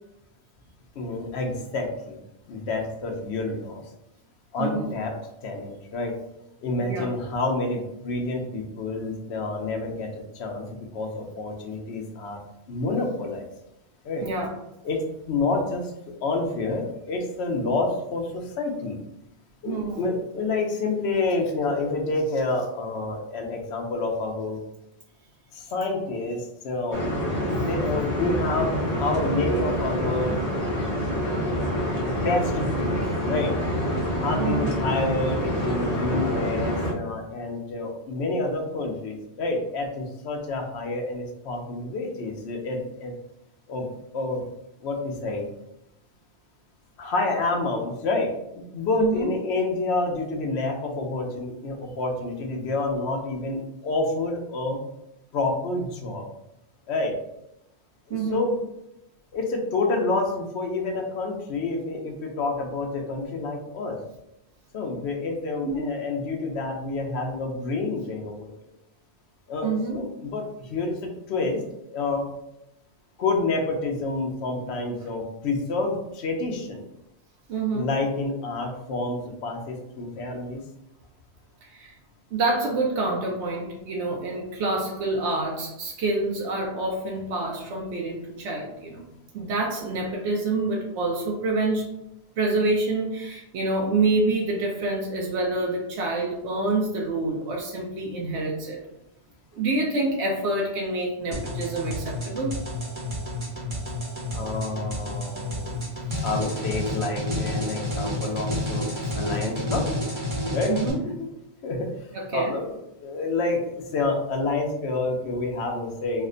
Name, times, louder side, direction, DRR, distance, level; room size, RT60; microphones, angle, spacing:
voice 1, 1.0-2.2 2.5-3.8 4.5-5.1 5.4-6.1 6.6-12.4 12.7-13.5 14.0-14.2 14.8-15.0 15.3-15.9 16.2-19.0 19.6-24.6 25.5-27.0 27.5-30.3 32.0-33.0 33.3-33.5 34.2-43.1 43.7-43.9 44.1-44.4 44.8-45.4 47.0-48.3 48.7-54.8 55.3-56.3 56.9-57.1 58.1-58.6 59.3-64.0 64.7-68.5 69.5-71.0 71.3-71.6 71.9-72.3 73.2-76.8 77.7-80.6 104.3-105.8 106.2-109.8 110.5-110.8 111.0-111.1 111.6-111.9 112.3-116.3, left 3 dB, 70° left, 2 dB, 0.9 m, -28 dB
voice 2, 4.6-4.9 6.8-7.1 14.2-14.5 19.6-20.0 34.4-34.7 49.0-49.3 58.1-58.4 65.6-65.8 69.6-70.0 77.5-77.9 81.6-81.9 82.3-89.0 89.3-91.9 92.4-98.8 99.5-102.6 106.1-106.2 110.7-111.0 112.1-112.6, right 2 dB, 80° right, -1 dB, 0.9 m, -27 dB
sound 1, 26.9-36.9, equal, 40° left, 0.6 m, -26 dB
sound 2, 101.3-110.9, left 1 dB, 30° right, 0.9 m, -30 dB
3.2 x 2.1 x 3.7 m, 0.85 s
omnidirectional pair, 1.2 m